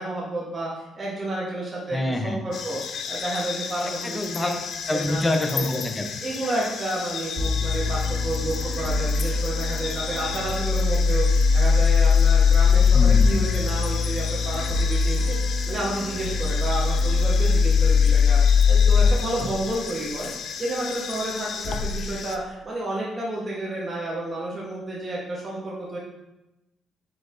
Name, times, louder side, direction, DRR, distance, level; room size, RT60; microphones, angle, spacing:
voice 1, 0.0-4.5 4.9-5.2 5.5-5.7 6.2-15.4 15.7-20.3 20.6-26.0, right 1 dB, 30° right, -5 dB, 1.1 m, -31 dB
voice 2, 1.9-2.4 4.0-4.5 4.9-6.1 12.9-13.4, left 1 dB, 20° left, 4 dB, 0.6 m, -26 dB
sound 1, 2.5-22.4, left 6 dB, 65° left, 0.4 m, -34 dB
sound 2, 7.4-19.1, left 5 dB, 85° right, 1.6 m, -20 dB
4.6 x 4.3 x 2.6 m, 0.95 s
cardioid pair, 80°, 0 cm